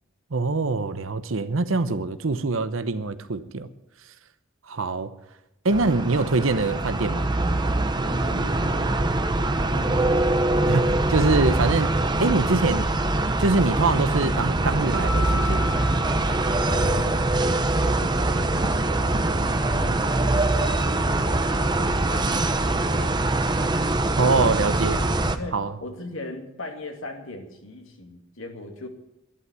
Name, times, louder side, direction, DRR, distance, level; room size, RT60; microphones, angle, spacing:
voice 1, 0.3-3.7 4.7-5.1 5.6-7.3 10.7-11.9 12.2-12.9 13.4-15.6 24.2-25.0 25.5-25.7, right 3 dB, 80° right, 11 dB, 0.9 m, -24 dB
sound 1, 5.7-25.4, right 2 dB, 20° right, 0.9 m, -23 dB
voice 2, 8.0-9.0 9.7-10.2 16.6-17.2 17.8-18.8 19.1-23.5 25.4-28.9, left 2 dB, 85° left, 3 dB, 2.4 m, -39 dB
Keyboard (musical), 14.9-17.3, left 3 dB, 60° right, 1.6 m, -34 dB
11.5 x 11.5 x 9.4 m, 0.89 s
head